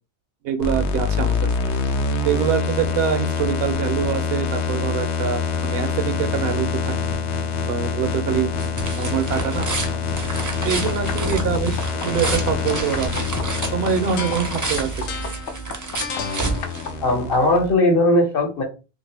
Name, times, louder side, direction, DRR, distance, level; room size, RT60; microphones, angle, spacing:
voice 1, 0.4-1.4 2.2-6.9 7.7-9.7 10.6-13.2 13.7-15.1, right 8 dB, 70° right, 7 dB, 0.7 m, -25 dB
sound 1, 0.6-17.7, left 5 dB, 85° left, 0.9 m, -25 dB
sound 2, 7.9-17.4, right 3 dB, 25° right, 0.4 m, -30 dB
voice 2, 17.0-18.6, left 1 dB, 60° left, 2 dB, 1.1 m, -18 dB
2.8 x 2.5 x 3.3 m, 0.30 s
omnidirectional pair, 1.1 m